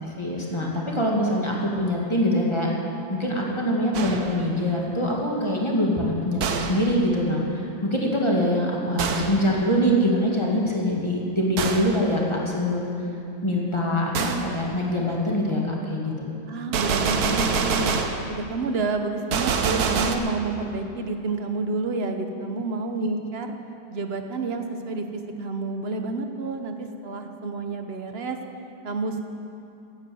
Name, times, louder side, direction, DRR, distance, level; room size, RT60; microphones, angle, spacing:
voice 1, 0.2-2.7 3.1-12.9 13.4-16.3, equal, 15° left, -3 dB, 2.1 m, -24 dB
Gunshot gunfire, 3.9-4.5 6.4-6.9 9.0-9.5 11.6-12.0 14.1-14.5 16.7-18.3 19.3-20.2, right 5 dB, 60° right, 1.3 m, -25 dB
voice 2, 16.5-17.9 18.3-23.5 23.9-28.4 28.8-29.2, right 3 dB, 45° right, 6 dB, 0.9 m, -29 dB
16.0 x 9.3 x 7.8 m, 2.7 s
omnidirectional pair, 2.1 m